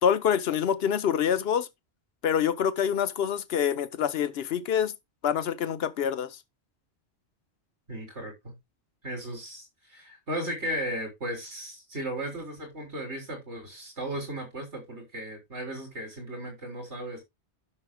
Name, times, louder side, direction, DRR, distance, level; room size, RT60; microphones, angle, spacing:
voice 1, 0.0-1.7 2.2-4.9 5.2-6.4, left 8 dB, 65° left, 1.0 m, -26 dB
voice 2, 7.9-8.6 9.0-17.2, right 1 dB, 80° right, 3.7 m, -36 dB
13.0 x 6.2 x 2.2 m
omnidirectional pair, 1.1 m